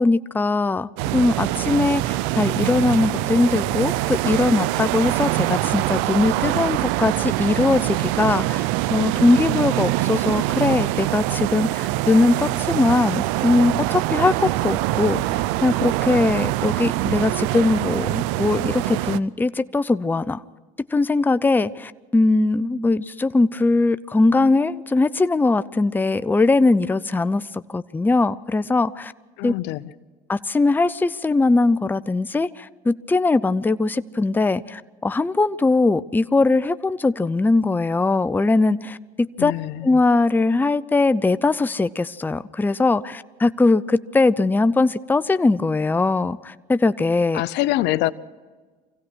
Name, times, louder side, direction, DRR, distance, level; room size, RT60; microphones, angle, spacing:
voice 1, 0.0-8.6 8.9-20.4 20.9-27.4 27.7-29.1 29.4-29.5 30.3-39.0 39.4-39.5 39.8-47.4, left 3 dB, 10° left, 14 dB, 0.6 m, -20 dB
sound 1, 1.0-19.2, right 16 dB, 75° right, 0.6 m, -24 dB
voice 2, 29.4-29.8 39.4-39.9 47.3-48.1, left 16 dB, 70° left, 17 dB, 0.7 m, -24 dB
25.0 x 16.5 x 6.3 m, 1.4 s
supercardioid pair, 90°, 19 cm